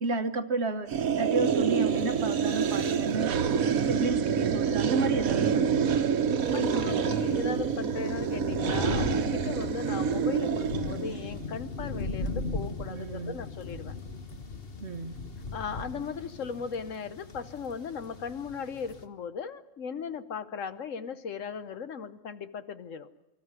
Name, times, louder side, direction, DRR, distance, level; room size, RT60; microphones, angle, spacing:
voice 1, 0.0-0.9 1.2-3.3 3.8-6.0 12.9-13.4 14.8-15.1, right 3 dB, 50° right, 9 dB, 1.3 m, -32 dB
sound 1, 0.9-11.3, right 7 dB, 70° right, 1.4 m, -27 dB
sound 2, 6.4-19.0, left 3 dB, 40° left, 1.4 m, -38 dB
voice 2, 6.5-13.9 15.5-23.1, left 6 dB, 60° left, 12 dB, 1.3 m, -37 dB
25.5 x 13.5 x 9.5 m, 1.1 s
omnidirectional pair, 1.5 m